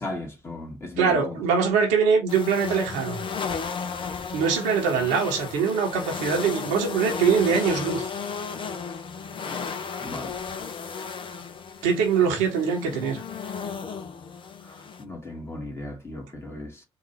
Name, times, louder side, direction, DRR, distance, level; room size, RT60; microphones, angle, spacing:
voice 1, 0.0-1.4 9.3-9.4 10.0-10.4 14.6-16.8, left 2 dB, 20° left, 2.0 m, -36 dB
voice 2, 1.0-3.2 4.3-8.1 11.8-13.2, right 6 dB, 65° right, 1.1 m, -23 dB
sound 1, 2.3-15.0, left 5 dB, 40° left, 0.8 m, -34 dB
3.9 x 2.6 x 4.3 m
figure-of-eight pair, 45°, 14 cm